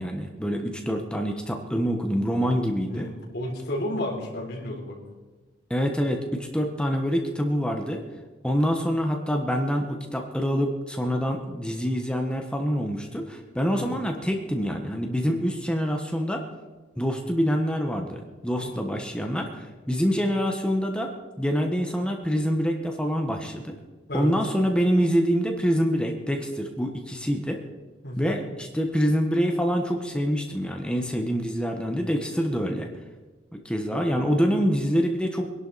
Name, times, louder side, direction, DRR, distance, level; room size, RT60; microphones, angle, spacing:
voice 1, 0.0-3.1 5.7-8.0 8.4-16.4 17.0-21.1 21.4-23.8 24.1-27.6 28.2-32.9 33.5-35.5, equal, 5° left, 3 dB, 1.2 m, -26 dB
voice 2, 2.9-5.0 13.6-13.9 18.6-18.8 24.1-24.3 28.0-28.4, left 1 dB, 55° left, -3 dB, 4.0 m, -32 dB
23.5 x 11.0 x 4.2 m, 1.3 s
head